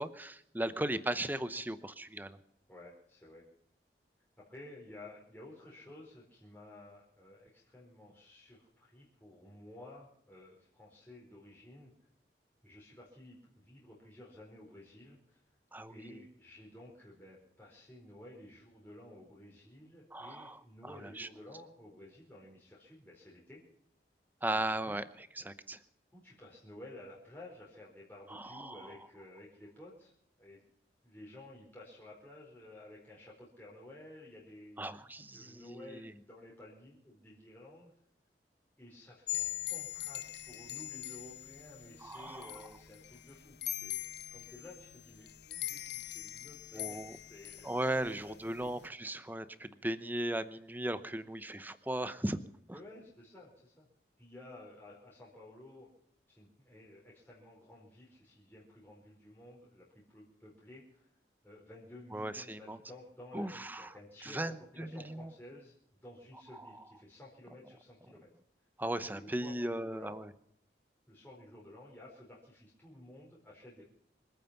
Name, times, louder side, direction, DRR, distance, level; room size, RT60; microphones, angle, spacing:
voice 1, 0.0-2.4 15.7-16.2 20.1-21.3 24.4-25.8 28.3-28.9 34.8-36.1 42.0-42.6 46.7-47.1 47.6-52.4 62.1-62.8 63.3-63.9 64.2-65.3 66.5-66.7 68.8-70.3, right 1 dB, 10° right, 13 dB, 0.8 m, -37 dB
voice 2, 2.7-3.4 4.4-11.9 12.6-15.4 15.9-23.6 26.1-30.1 30.4-30.6 31.0-34.9 35.3-37.9 38.8-47.0 47.3-48.7 52.7-53.9 54.2-55.9 56.3-61.1 61.4-65.8 66.0-68.3 69.1-70.2 71.1-73.8, left 1 dB, 10° left, -5 dB, 4.5 m, -53 dB
sound 1, 39.3-48.9, left 14 dB, 75° left, 1.1 m, -42 dB
26.0 x 9.4 x 5.9 m, 0.72 s
head